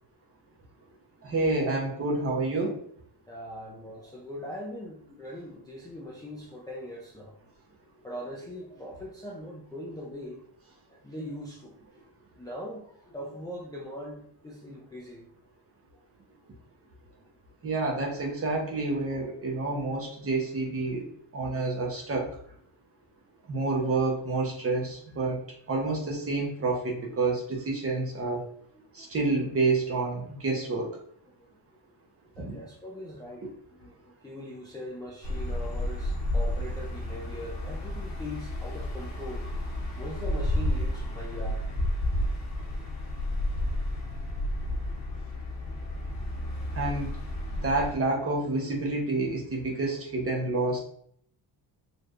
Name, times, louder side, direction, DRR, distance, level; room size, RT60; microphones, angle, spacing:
voice 1, 1.2-2.8 17.6-21.0 21.3-22.3 23.5-25.4 25.7-28.4 28.9-30.9 32.4-32.6 46.7-47.1 47.5-50.8, right 3 dB, 30° right, -1 dB, 0.9 m, -28 dB
voice 2, 3.3-7.3 8.0-10.5 10.9-11.7 12.4-15.3 29.0-29.1 31.4-31.5 32.4-39.5 40.0-41.6 43.6-43.7 44.7-45.0 46.5-46.7, equal, 10° left, -5 dB, 0.4 m, -41 dB
sound 1, 35.2-47.9, left 1 dB, 40° left, 1.0 m, -31 dB
4.3 x 3.2 x 2.5 m, 0.65 s
cardioid pair, 150°, 45 cm